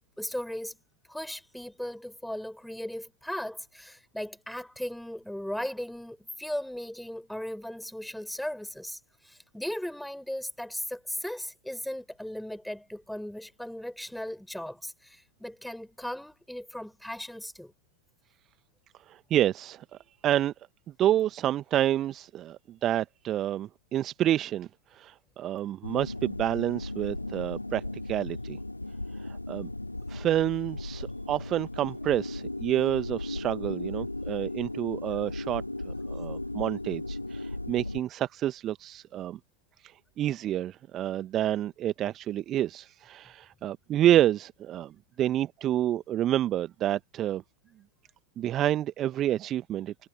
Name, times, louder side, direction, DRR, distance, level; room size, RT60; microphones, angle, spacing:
voice 1, 0.2-0.8 1.1-17.7, left 1 dB, ahead, 4.7 m, -37 dB
voice 2, 19.1-19.8 20.2-20.5 21.0-28.6 29.5-29.7 30.1-39.4 40.2-44.9 45.2-47.4 48.4-50.1, right 12 dB, 30° right, 1.1 m, -28 dB
sound 1, 25.8-38.0, left 2 dB, 85° left, 5.2 m, -36 dB
figure-of-eight pair, 90°, 0 cm